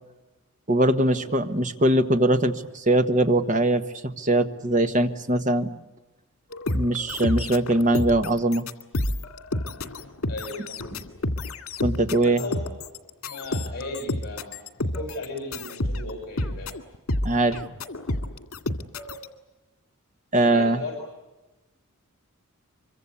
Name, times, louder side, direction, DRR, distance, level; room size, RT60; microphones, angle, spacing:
voice 1, 0.7-3.9 4.2-5.7 6.7-8.6 11.8-12.4 17.2-17.6 20.3-20.8, right 1 dB, 35° right, 8 dB, 1.4 m, -21 dB
sound 1, 6.5-19.3, left 1 dB, 80° left, 2.1 m, -30 dB
voice 2, 10.3-10.8 12.1-12.7 13.3-16.8 20.4-21.0, left 2 dB, 45° left, 2 dB, 6.6 m, -36 dB
25.5 x 24.0 x 8.4 m, 1.1 s
head